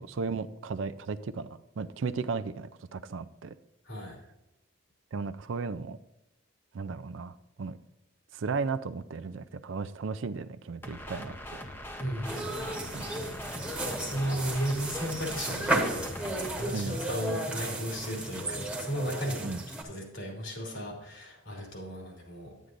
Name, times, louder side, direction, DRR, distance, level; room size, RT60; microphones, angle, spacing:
voice 1, 0.0-1.5 1.8-3.5 5.1-6.0 6.7-7.8 8.3-11.6 12.6-13.2 16.7-17.0 19.4-19.6, right 4 dB, 75° right, 13 dB, 0.4 m, -35 dB
voice 2, 3.8-4.2 12.0-12.6 13.5-19.5 19.8-22.7, equal, 80° left, -1 dB, 2.8 m, -35 dB
sound 1, 10.8-16.6, left 1 dB, 10° left, 0.7 m, -42 dB
Tourists walking through garden, 12.2-19.8, right 2 dB, 5° right, 1.2 m, -34 dB
9.8 x 9.3 x 2.6 m, 0.91 s
head